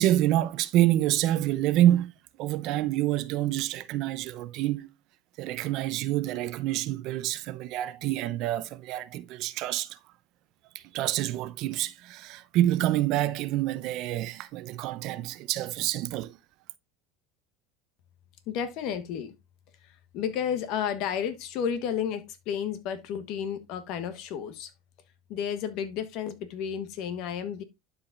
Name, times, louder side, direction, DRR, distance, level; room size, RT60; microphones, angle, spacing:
voice 1, 0.0-2.1 2.4-4.9 5.4-10.0 10.7-16.4, right 14 dB, 55° right, 0.6 m, -27 dB
voice 2, 18.5-19.3 19.8-24.7 25.3-27.6, left 8 dB, 55° left, 1.3 m, -32 dB
11.5 x 4.9 x 2.5 m
supercardioid pair, 135°, 0 cm